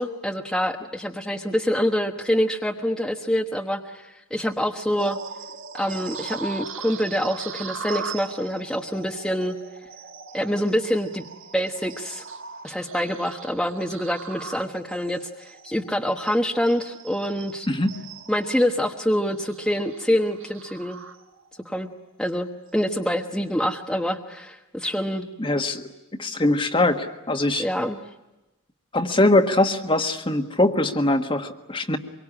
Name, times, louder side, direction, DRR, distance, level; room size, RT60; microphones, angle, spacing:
voice 1, 0.0-5.2 5.7-9.6 10.3-11.3 11.5-12.2 12.6-17.7 18.3-21.0 21.6-21.9 22.2-25.3 27.6-28.0, equal, 5° left, 2 dB, 1.2 m, -26 dB
sound 1, 5.0-21.6 22.1-22.3 22.8-23.0, right 5 dB, 65° right, 1.6 m, -40 dB
voice 2, 17.7-18.0 25.4-25.8 26.2-27.7 28.9-32.0, left 2 dB, 25° left, 7 dB, 1.5 m, -22 dB
25.5 x 23.5 x 10.0 m, 0.99 s
head